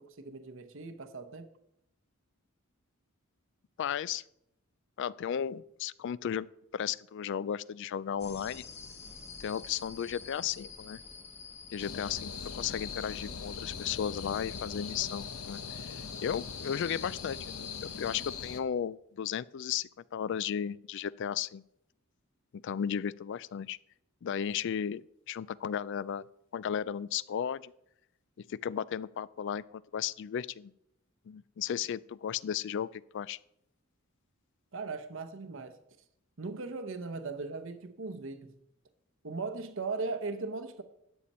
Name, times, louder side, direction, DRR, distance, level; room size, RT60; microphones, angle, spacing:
voice 1, 0.0-1.5 34.7-35.8 36.4-38.6 39.2-40.8, right 3 dB, 60° right, 0.8 m, -38 dB
voice 2, 3.8-4.2 5.0-6.5 6.7-8.6 9.4-11.0 11.7-17.7 18.0-21.6 22.5-23.8 24.2-26.2 26.5-27.7 28.4-30.7 31.3-33.4, left 8 dB, 55° left, 0.3 m, -35 dB
sound 1, 8.2-18.3, left 4 dB, 30° left, 1.2 m, -49 dB
sound 2, 11.8-18.6, left 6 dB, 80° left, 0.9 m, -41 dB
12.5 x 8.5 x 4.2 m
head